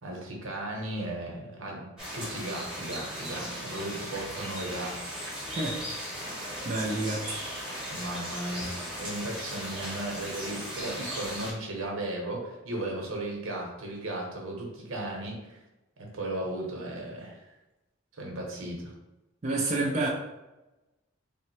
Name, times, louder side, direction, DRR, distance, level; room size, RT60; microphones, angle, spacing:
voice 1, 0.0-5.0 7.9-15.6 16.0-17.4 18.2-18.9, right 1 dB, 85° right, -1 dB, 1.0 m, -36 dB
sound 1, 2.0-11.5, equal, 5° right, 1.0 m, -37 dB
voice 2, 6.6-7.4 8.6-8.7 19.4-20.1, right 2 dB, 35° right, -3 dB, 0.5 m, -29 dB
3.5 x 2.1 x 4.3 m, 1.0 s
head